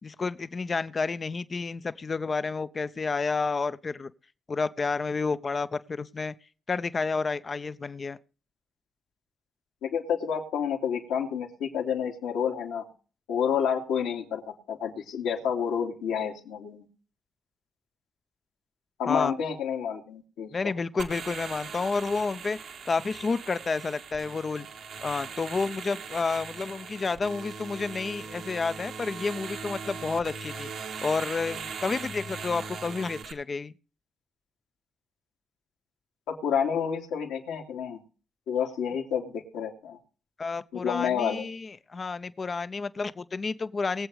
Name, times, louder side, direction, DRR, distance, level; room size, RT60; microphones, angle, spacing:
voice 1, 0.0-4.1 4.5-6.3 6.7-8.2 19.1-19.3 20.5-22.6 22.9-24.7 25.0-30.7 31.0-33.7 40.4-44.1, left 4 dB, 40° left, 0.9 m, -30 dB
voice 2, 9.8-12.9 13.3-16.9 19.0-20.7 36.3-38.0 38.5-40.0 40.7-41.5, left 7 dB, 80° left, 2.7 m, -29 dB
sound 1, 21.0-33.3, right 5 dB, 70° right, 2.1 m, -40 dB
22.0 x 8.0 x 3.2 m
hypercardioid pair, 50°, 0 cm